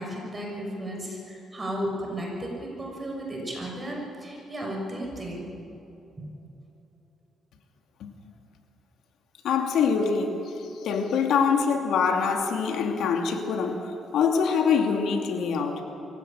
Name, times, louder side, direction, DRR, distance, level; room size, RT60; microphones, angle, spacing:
voice 1, 0.0-5.4, equal, 25° right, 0 dB, 6.7 m, -34 dB
voice 2, 9.4-15.8, left 6 dB, 75° left, 4 dB, 2.5 m, -25 dB
23.5 x 16.0 x 8.9 m, 2.8 s
cardioid pair, 90°, 0 cm